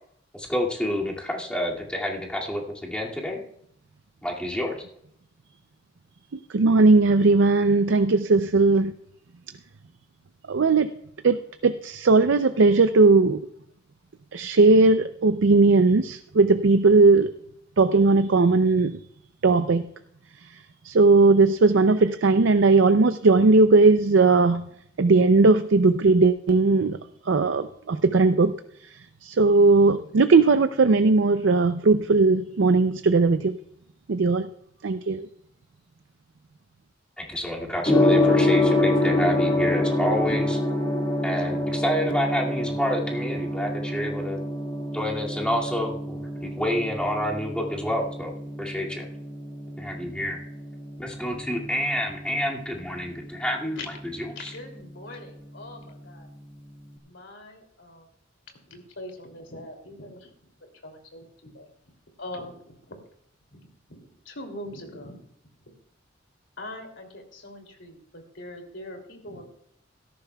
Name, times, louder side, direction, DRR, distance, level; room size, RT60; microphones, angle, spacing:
voice 1, 0.3-3.4 4.2-4.8 37.2-40.6 41.2-44.4 44.9-48.3 48.6-49.1 49.8-50.4 51.0-54.5, equal, 5° left, -3 dB, 2.3 m, -28 dB
voice 2, 6.5-8.9 10.5-10.9 11.2-13.4 14.3-17.3 17.8-19.0 19.4-19.9 20.8-24.6 25.0-27.0 27.3-28.5 29.2-33.6 34.1-34.5 34.8-35.3, right 3 dB, 75° right, 9 dB, 0.5 m, -18 dB
Gong, 37.8-56.9, left 1 dB, 25° left, 1.9 m, -27 dB
voice 3, 54.3-56.3 57.0-58.1 58.7-60.5 60.8-61.7 62.2-63.0 63.5-63.6 63.9-64.0 64.2-65.2 66.6-69.4, left 1 dB, 75° left, 3 dB, 2.9 m, -42 dB
17.5 x 13.5 x 2.3 m, 0.70 s
head